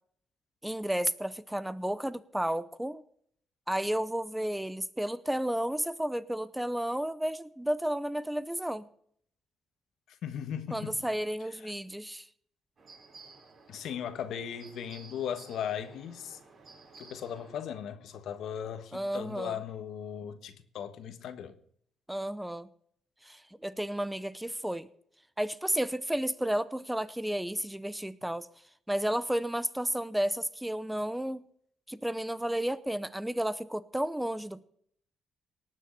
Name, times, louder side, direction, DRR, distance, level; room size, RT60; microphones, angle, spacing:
voice 1, 0.6-3.0 3.7-8.9 10.7-12.3 18.9-19.6 22.1-22.7 23.2-24.9 25.4-28.5 28.9-31.5 31.9-34.7, right 1 dB, 5° right, 0.7 m, -32 dB
voice 2, 10.2-11.0 11.6-11.7 13.7-16.4 17.0-21.5, left 8 dB, 75° left, 1.4 m, -37 dB
sound 1, 12.8-17.8, right 3 dB, 45° right, 5.9 m, -54 dB
18.5 x 6.6 x 7.8 m
cardioid pair, 90°, 0 cm